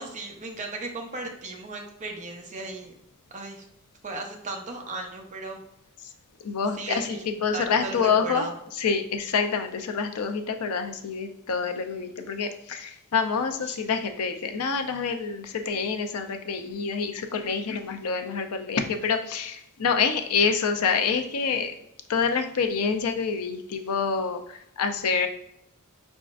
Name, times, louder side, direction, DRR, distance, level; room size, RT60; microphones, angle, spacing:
voice 1, 0.0-2.9 3.3-3.7 4.0-5.6 6.7-8.5 13.6-13.8, right 2 dB, 35° right, 2 dB, 0.7 m, -36 dB
voice 2, 6.4-8.5 8.8-21.7 22.1-25.3, left 5 dB, 80° left, 6 dB, 0.5 m, -27 dB
5.0 x 3.5 x 2.5 m, 0.80 s
head